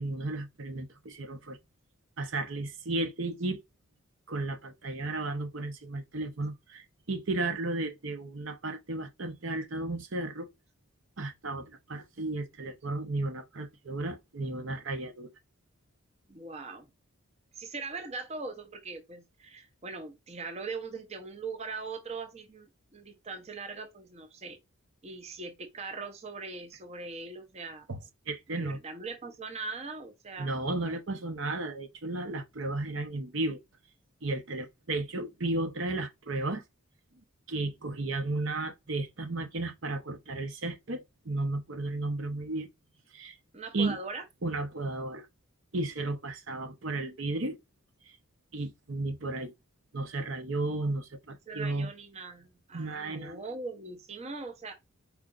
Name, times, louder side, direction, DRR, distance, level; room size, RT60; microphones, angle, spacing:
voice 1, 0.0-1.6 2.2-3.6 4.3-10.5 11.2-15.3 27.9-28.0 28.3-28.8 30.4-33.6 34.2-36.6 37.5-42.7 43.1-43.4 43.7-44.0 44.4-45.3 45.7-47.6 48.5-49.5 49.9-51.9 52.7-53.4, right 2 dB, 60° right, 0.8 m, -34 dB
voice 2, 16.3-16.9 17.5-24.6 25.0-27.9 28.5-30.6 43.5-44.2 51.5-54.7, right 4 dB, 30° right, 0.7 m, -41 dB
4.6 x 2.5 x 3.8 m
head